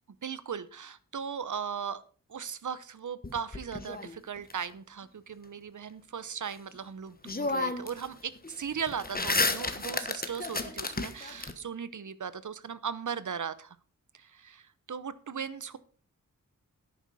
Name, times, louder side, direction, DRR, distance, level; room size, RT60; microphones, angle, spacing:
voice 1, 0.2-2.0 2.3-13.8 14.1-15.8, right 7 dB, 65° right, 16 dB, 0.8 m, -38 dB
sound 1, 3.2-4.5 6.7-6.8 7.2-8.1 8.4-11.5, left 3 dB, 30° left, 1.2 m, -32 dB
11.0 x 9.4 x 4.1 m, 0.43 s
wide cardioid pair, 95°, 33 cm